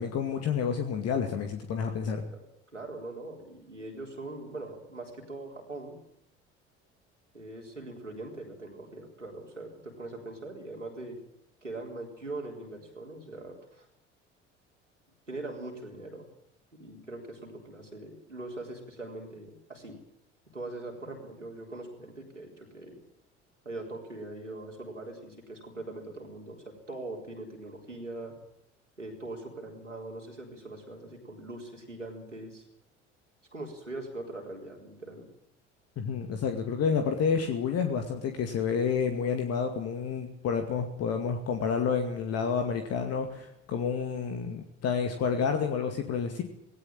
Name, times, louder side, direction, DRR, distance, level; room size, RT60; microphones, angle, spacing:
voice 1, 0.0-2.2 36.0-46.4, left 6 dB, 45° left, 5 dB, 2.3 m, -29 dB
voice 2, 2.7-6.0 7.3-11.2 11.6-13.9 15.3-16.3 16.7-20.0 20.5-23.0 23.6-28.3 29.0-32.7 33.5-35.3, right 2 dB, 90° right, 0 dB, 4.1 m, -41 dB
18.5 x 18.5 x 8.9 m, 0.75 s
figure-of-eight pair, 60°, 36 cm